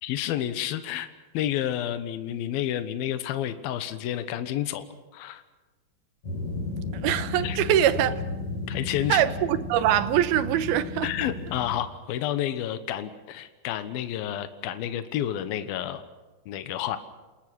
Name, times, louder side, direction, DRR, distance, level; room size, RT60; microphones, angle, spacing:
voice 1, 0.0-4.9 5.1-5.4 7.4-7.6 8.7-9.2 11.0-16.0 16.5-17.0, left 11 dB, 75° left, 2.9 m, -30 dB
sound 1, 6.2-11.8, left 2 dB, 45° left, 8.9 m, -34 dB
voice 2, 7.0-8.1 9.1-11.1, right 11 dB, 80° right, 2.8 m, -23 dB
29.0 x 20.0 x 6.2 m
omnidirectional pair, 4.5 m